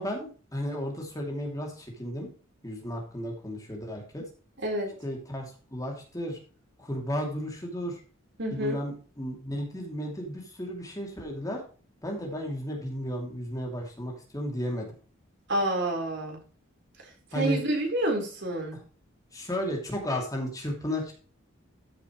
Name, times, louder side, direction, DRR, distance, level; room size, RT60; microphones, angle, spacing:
voice 1, 0.0-2.3 2.6-4.2 5.0-6.4 6.8-8.0 8.5-11.6 12.0-14.9 17.3-17.6 19.3-21.1, equal, 15° left, 0 dB, 2.7 m, -33 dB
voice 2, 8.4-8.8 15.5-16.4 17.3-18.8, right 1 dB, 60° right, 1 dB, 4.1 m, -28 dB
13.5 x 7.1 x 3.1 m, 0.38 s
head